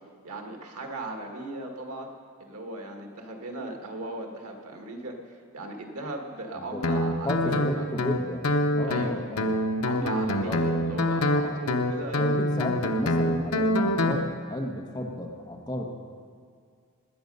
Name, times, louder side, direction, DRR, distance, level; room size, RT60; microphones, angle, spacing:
voice 1, 0.2-2.1 2.4-5.2 5.5-7.8 8.8-9.1 9.8-12.4, right 2 dB, 90° right, 3 dB, 1.6 m, -37 dB
Guitar, 6.8-14.2, left 1 dB, 80° left, 0.8 m, -26 dB
voice 2, 7.2-9.6 10.4-10.6 12.2-15.9, left 1 dB, 20° left, 1 dB, 1.1 m, -33 dB
20.0 x 8.6 x 5.4 m, 2.2 s
head